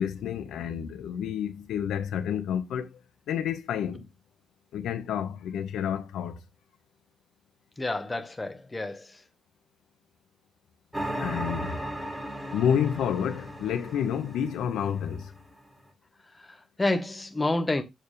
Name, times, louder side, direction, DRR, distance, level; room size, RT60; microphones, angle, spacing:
voice 1, 0.0-2.9 3.3-4.1 4.7-6.4 11.1-11.8 12.5-15.3, left 8 dB, 85° left, 1.3 m, -29 dB
voice 2, 7.8-9.2 16.4-17.8, left 2 dB, 15° left, 1.2 m, -29 dB
sound 1, 10.9-15.4, right 1 dB, 10° right, 2.0 m, -36 dB
7.7 x 7.1 x 3.3 m
cardioid pair, 165°, 0 cm